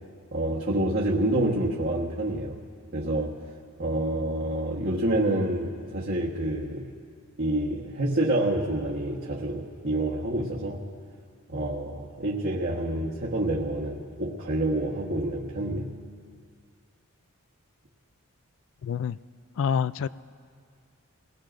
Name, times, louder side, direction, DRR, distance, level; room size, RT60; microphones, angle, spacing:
voice 1, 0.3-2.6 2.9-3.4 3.8-6.9 7.4-10.8 11.5-15.9, right 1 dB, 50° right, -5 dB, 1.3 m, -28 dB
voice 2, 18.8-19.2 19.6-20.1, left 7 dB, 60° left, 16 dB, 0.3 m, -26 dB
29.0 x 19.0 x 2.6 m, 2.1 s
head